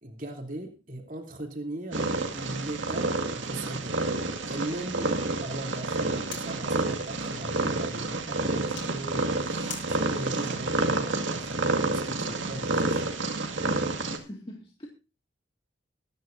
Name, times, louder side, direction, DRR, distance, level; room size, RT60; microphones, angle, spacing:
voice 1, 0.0-4.0 4.5-13.2, right 1 dB, 45° right, 3.2 m, -39 dB
Purr, 1.9-14.2, right 2 dB, 75° right, 2.1 m, -29 dB
sound 1, 2.5-11.9, left 6 dB, 70° left, 6.7 m, -51 dB
voice 2, 14.1-14.9, equal, 25° left, 2.1 m, -43 dB
23.5 x 10.5 x 2.7 m
head